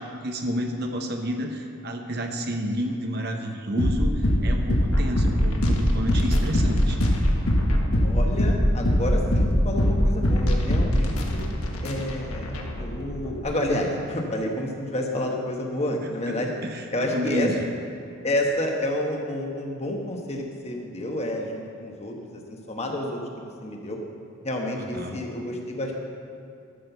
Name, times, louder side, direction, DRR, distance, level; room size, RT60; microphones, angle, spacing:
voice 1, 0.0-7.0 16.0-16.4 16.6-16.9 17.1-17.7 24.9-25.2, equal, 45° right, 4 dB, 0.9 m, -30 dB
sound 1, 3.8-13.4, equal, 85° left, 1.4 m, -22 dB
voice 2, 8.0-11.4 11.8-16.5 16.9-17.5 18.2-24.0 24.4-25.9, left 1 dB, 30° left, 1 dB, 1.1 m, -29 dB
12.5 x 6.5 x 6.9 m, 2.5 s
head